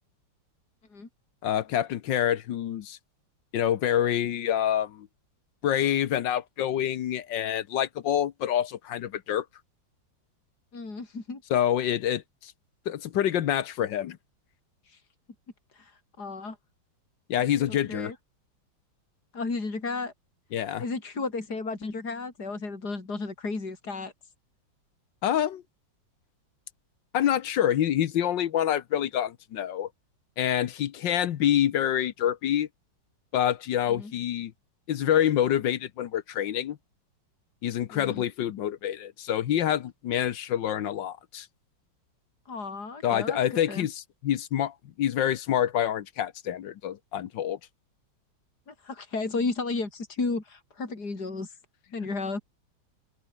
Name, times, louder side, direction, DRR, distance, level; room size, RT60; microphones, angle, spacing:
voice 1, 1.4-3.0 3.5-5.1 5.6-9.4 11.5-12.5 12.9-14.2 17.3-18.1 20.5-20.8 25.2-25.6 27.1-29.9 30.4-32.7 33.3-34.5 34.9-36.8 37.6-41.5 43.0-47.6, left 10 dB, 70° left, 1.6 m, -27 dB
voice 2, 10.7-11.4 14.9-15.0 15.7-15.9 16.2-16.6 17.7-18.2 19.3-20.1 20.8-24.1 33.9-34.1 37.9-38.2 42.5-43.4 43.7-43.9 48.7-51.5 51.9-52.4, left 3 dB, 55° left, 4.8 m, -33 dB
open air
omnidirectional pair, 2.1 m